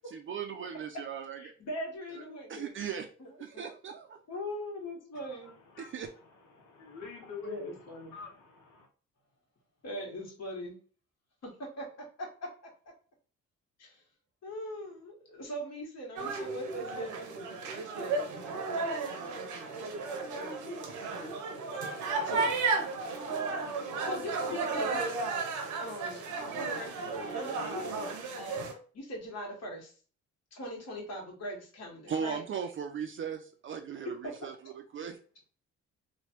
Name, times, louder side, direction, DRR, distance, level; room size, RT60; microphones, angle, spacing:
voice 1, 0.1-1.5 2.5-3.1 3.4-4.2 5.8-6.1 32.1-35.2, right 7 dB, 45° right, 0.4 m, -38 dB
voice 2, 1.3-2.7 3.2-3.6 4.3-5.5 7.4-8.1 9.8-10.8 11.4-12.7 13.8-14.0 14.4-17.3 22.2-22.6 24.0-25.3 25.8-26.2 26.6-28.7 28.9-29.9 30.5-32.4 34.0-34.3, equal, 60° left, 1.4 m, -41 dB
voice 3, 5.1-6.0 6.5-8.9, left 4 dB, 80° left, 0.8 m, -47 dB
sound 1, 16.2-28.7, right 3 dB, 85° right, 0.8 m, -34 dB
3.1 x 2.2 x 2.9 m
cardioid pair, 90°, 30 cm